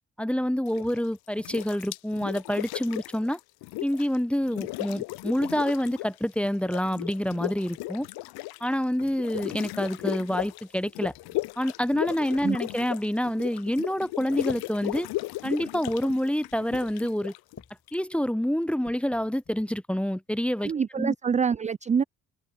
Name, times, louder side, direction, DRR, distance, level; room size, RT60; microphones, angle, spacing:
voice 1, 0.2-3.4 3.8-8.1 8.6-11.1 11.6-15.1 15.4-17.3 17.9-21.1, equal, 5° left, 0.8 m, -27 dB
sound 1, 0.6-1.1 1.4-4.2 4.4-6.2 6.4-17.9, left 20 dB, 65° left, 0.6 m, -36 dB
sound 2, 10.4-11.5 12.3-12.8 13.7-14.0 14.5-16.2 16.5-17.1 17.5-17.9 18.6-19.6, left 5 dB, 40° left, 5.0 m, -46 dB
voice 2, 20.6-22.0, right 6 dB, 20° right, 0.4 m, -25 dB
hypercardioid pair, 45°, 40 cm